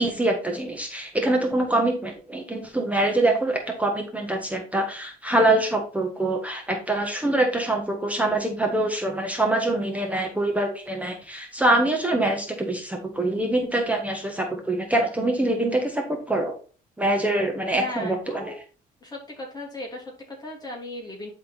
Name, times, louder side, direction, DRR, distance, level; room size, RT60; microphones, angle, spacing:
voice 1, 0.0-16.6 17.0-18.5, right 1 dB, 10° right, 2 dB, 1.6 m, -24 dB
voice 2, 17.8-18.6 19.0-21.3, left 1 dB, 25° left, 0 dB, 2.9 m, -37 dB
10.5 x 4.0 x 4.3 m, 0.38 s
cardioid pair, 110°, 17 cm